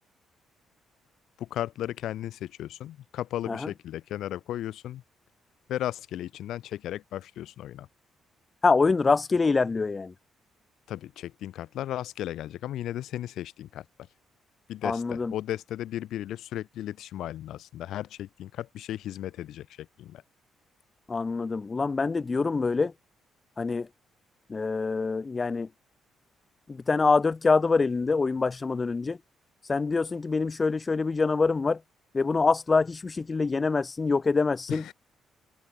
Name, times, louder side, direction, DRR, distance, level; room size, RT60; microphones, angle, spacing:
voice 1, 1.4-5.0 5.7-7.9 10.9-13.9 14.7-20.2 34.7-34.9, left 12 dB, 80° left, 7.3 m, -35 dB
voice 2, 8.6-10.1 14.8-15.3 21.1-22.9 23.6-23.9 24.5-25.7 26.7-29.2 29.7-31.8 32.1-34.8, left 4 dB, 30° left, 0.8 m, -25 dB
cardioid pair, 90°, 0 cm